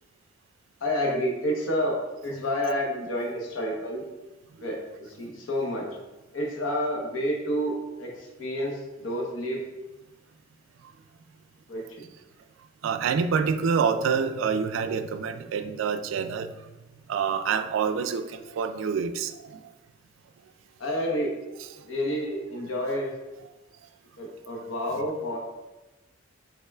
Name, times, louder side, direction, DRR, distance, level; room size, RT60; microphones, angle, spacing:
voice 1, 0.8-4.0 4.6-5.9 6.3-9.6 11.7-12.1 20.8-21.3 21.9-23.1 24.2-25.4, equal, 85° left, 0 dB, 0.9 m, -29 dB
voice 2, 12.8-16.5 17.1-19.6, right 6 dB, 75° right, 10 dB, 0.3 m, -27 dB
5.4 x 3.6 x 2.3 m, 1.1 s
head